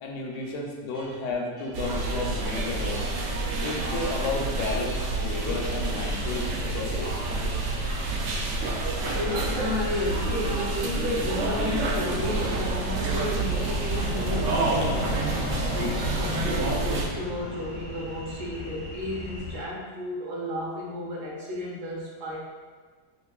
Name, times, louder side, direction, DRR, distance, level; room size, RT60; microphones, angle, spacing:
voice 1, 0.0-3.1 3.6-7.1, left 3 dB, 75° left, 0 dB, 1.1 m, -32 dB
sound 1, 1.7-17.1, right 2 dB, 90° right, 0.6 m, -29 dB
sound 2, 5.9-19.6, equal, 25° left, 0.5 m, -35 dB
voice 2, 9.1-15.2 15.7-22.4, left 1 dB, 75° right, -5 dB, 1.4 m, -33 dB
5.2 x 2.4 x 2.3 m, 1.5 s
omnidirectional pair, 1.9 m